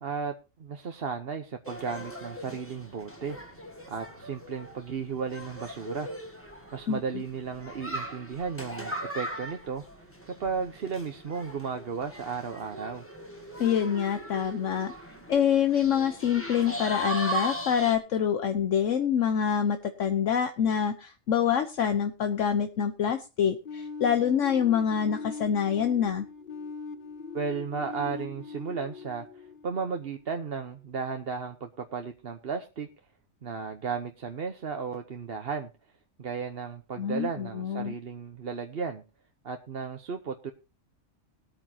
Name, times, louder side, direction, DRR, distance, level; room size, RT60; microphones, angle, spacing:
voice 1, 0.0-3.4 3.9-6.1 6.7-9.8 10.3-13.0 27.3-32.9 33.4-35.7 36.2-39.0 39.4-40.5, right 5 dB, 50° right, 6 dB, 1.1 m, -34 dB
sound 1, 1.6-17.9, right 1 dB, 10° left, 2.1 m, -39 dB
voice 2, 13.6-14.9 15.3-26.3 37.0-37.9, left 8 dB, 70° left, 8 dB, 1.2 m, -26 dB
sound 2, 23.7-30.4, left 5 dB, 45° left, 1.0 m, -41 dB
20.5 x 9.1 x 2.9 m, 0.30 s
omnidirectional pair, 1.4 m